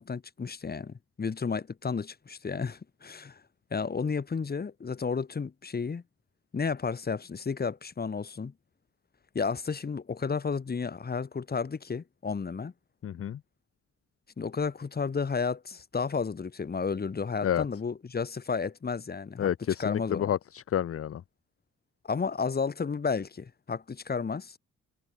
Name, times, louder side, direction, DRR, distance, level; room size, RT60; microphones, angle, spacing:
voice 1, 0.0-3.4 3.7-6.0 6.5-8.5 9.3-12.7 14.4-19.5 19.8-20.3 22.0-24.6, left 5 dB, 35° left, 1.2 m, -32 dB
voice 2, 13.0-13.4 17.4-17.6 19.4-21.2, left 10 dB, 50° left, 0.6 m, -29 dB
cardioid pair, 75°, 29 cm